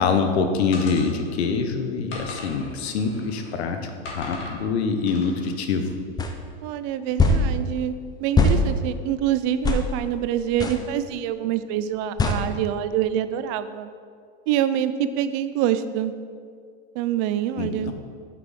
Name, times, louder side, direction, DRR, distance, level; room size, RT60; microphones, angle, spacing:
voice 1, 0.0-5.9 17.6-17.9, left 5 dB, 85° left, 6 dB, 0.9 m, -25 dB
sound 1, 0.7-1.5 2.1-3.6 4.0-4.6 5.1-5.5, left 2 dB, 40° left, 1.8 m, -39 dB
sound 2, 6.2-6.3 7.2-7.4 8.4-8.6 9.6-9.8 10.6-10.8 12.2-12.4, left 2 dB, 15° left, 0.5 m, -19 dB
voice 2, 6.6-7.9 8.2-13.9 14.5-16.1 17.0-17.9, right 10 dB, 50° right, 12 dB, 0.5 m, -25 dB
6.1 x 5.8 x 4.8 m, 2.2 s
supercardioid pair, 120°, 31 cm